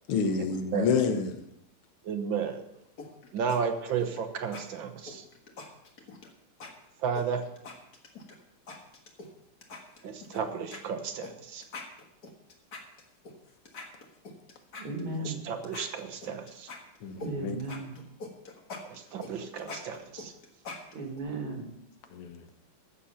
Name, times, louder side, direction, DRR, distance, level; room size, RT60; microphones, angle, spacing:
voice 1, 0.1-1.4 17.0-17.6 22.1-22.5, left 5 dB, 90° left, 2.1 m, -28 dB
voice 2, 2.0-2.6 3.3-5.2 7.0-7.4 10.0-11.6 15.3-16.7 18.9-20.3, right 6 dB, 65° right, 1.7 m, -33 dB
sound 1, 3.0-3.6 3.9-4.2 4.5-4.6 5.1-6.3 6.6-6.7 7.2-8.4 8.7-9.3 9.6-10.4 10.7-10.8 11.2-11.3 11.6-13.3 13.7-15.4 15.6-17.3 17.6-21.2, left 3 dB, 45° left, 2.0 m, -43 dB
voice 3, 14.7-15.5 17.2-18.0 20.9-21.7, right 2 dB, 80° right, 3.3 m, -36 dB
14.5 x 7.1 x 5.6 m
omnidirectional pair, 2.4 m